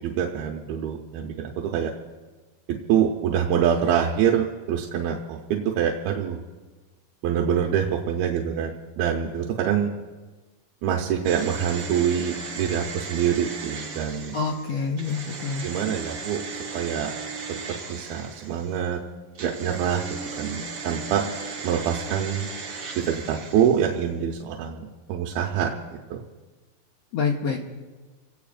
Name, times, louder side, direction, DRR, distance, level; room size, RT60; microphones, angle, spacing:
voice 1, 0.0-1.9 2.7-6.4 7.2-9.9 10.8-14.3 15.6-16.4 16.7-17.1 17.7-19.0 19.4-20.0 20.4-21.3 21.6-22.5 22.9-26.2, right 8 dB, 85° right, 0 dB, 2.8 m, -25 dB
sound 1, 11.2-18.8 19.3-24.1 24.3-24.4, right 4 dB, 50° right, 1.5 m, -37 dB
voice 2, 14.3-15.7 27.1-27.6, left 5 dB, 70° left, 1 dB, 1.6 m, -27 dB
29.5 x 17.5 x 2.5 m, 1.3 s
omnidirectional pair, 4.2 m